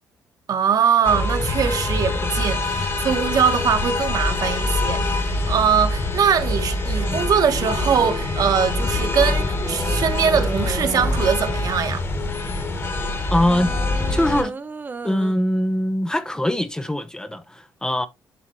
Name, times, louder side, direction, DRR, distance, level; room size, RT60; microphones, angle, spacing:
voice 1, 0.5-12.0, right 7 dB, 55° right, 1.6 m, -22 dB
sound 1, 1.0-14.4, left 2 dB, 35° left, 1.9 m, -24 dB
sound 2, 9.6-11.5 13.4-15.4 16.3-16.6, right 4 dB, 25° right, 0.9 m, -35 dB
voice 2, 13.3-13.7 14.1-14.5 15.0-18.1, left 1 dB, 10° left, 0.9 m, -22 dB
11.0 x 4.1 x 3.2 m
cardioid pair, 130°, 8 cm